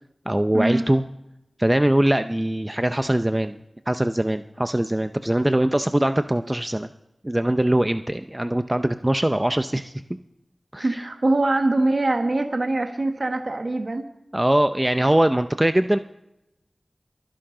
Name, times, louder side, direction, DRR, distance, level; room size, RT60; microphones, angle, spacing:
voice 1, 0.3-1.0 1.6-3.6 3.9-6.9 7.2-9.9 10.7-11.0 14.3-16.0, right 1 dB, 20° right, 9 dB, 0.5 m, -22 dB
voice 2, 10.8-14.1, right 2 dB, 60° right, 4 dB, 1.2 m, -23 dB
23.0 x 10.5 x 3.8 m, 0.87 s
wide cardioid pair, 60°, 0 cm